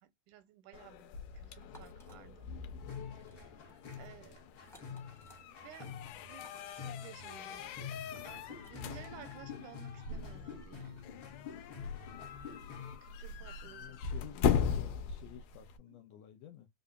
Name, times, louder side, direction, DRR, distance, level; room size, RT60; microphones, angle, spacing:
voice 1, 0.0-1.1 1.3-2.5 3.3-3.6 4.0-4.4 4.8-5.0 5.4-6.0 6.2-7.8 8.2-11.1 13.0-14.0, right 11 dB, 80° right, 2.0 m, -55 dB
sound 1, 0.7-15.8, left 7 dB, 90° left, 2.2 m, -39 dB
sound 2, 1.6-2.2 3.1-3.4 3.6-3.9 4.6-5.4 6.4-6.8 8.3-8.8, equal, ahead, 1.0 m, -61 dB
sound 3, 2.8-13.0, left 6 dB, 50° left, 1.7 m, -48 dB
voice 2, 13.6-16.7, left 11 dB, 70° left, 1.8 m, -53 dB
5.1 x 2.7 x 2.2 m
omnidirectional pair, 3.7 m